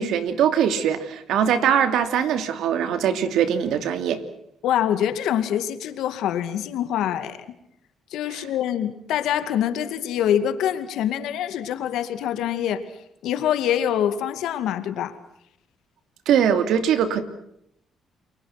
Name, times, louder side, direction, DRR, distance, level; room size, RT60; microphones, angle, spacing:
voice 1, 0.0-4.2 8.3-8.4 16.3-17.2, right 8 dB, 80° right, 9 dB, 2.7 m, -22 dB
voice 2, 4.6-7.4 8.1-12.8 13.2-15.1, left 10 dB, 85° left, 9 dB, 2.3 m, -25 dB
30.0 x 23.0 x 6.0 m, 0.75 s
cardioid pair, 90°, 0 cm